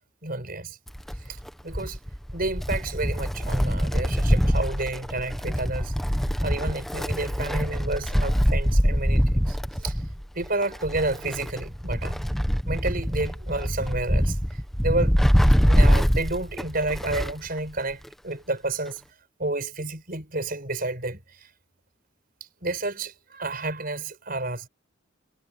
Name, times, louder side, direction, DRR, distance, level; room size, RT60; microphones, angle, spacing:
voice 1, 0.2-0.8 1.2-2.0 2.3-5.9 6.4-10.0 10.4-12.2 12.7-15.2 15.7-19.0 19.4-21.5 22.6-24.7, right 2 dB, 45° right, 5.8 m, -30 dB
Wind, 0.9-17.5 17.8-17.9 18.9-19.0, equal, ahead, 1.1 m, -24 dB
head